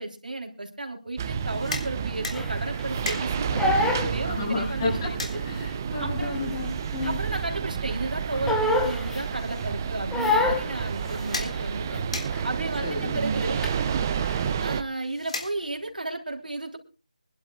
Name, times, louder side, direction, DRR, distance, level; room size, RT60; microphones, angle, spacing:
voice 1, 0.0-5.2 6.0-6.5 7.0-12.0 12.4-13.7 14.6-16.8, right 2 dB, 85° right, 2 dB, 3.2 m, -33 dB
sound 1, 1.2-14.8, right 7 dB, 20° right, 0.5 m, -30 dB
sound 2, 1.3-16.0, left 3 dB, 50° left, 3.6 m, -41 dB
Crying sobbing, 2.3-5.0 5.3-7.6 7.9-9.6 10.1-12.0 12.3-12.6 12.9-14.5, left 2 dB, 5° left, 0.9 m, -29 dB
voice 2, 4.0-5.1 5.4-7.2 12.8-13.2, left 3 dB, 30° left, -1 dB, 6.0 m, -32 dB
25.0 x 11.5 x 2.3 m, 0.33 s
figure-of-eight pair, 165°, 4 cm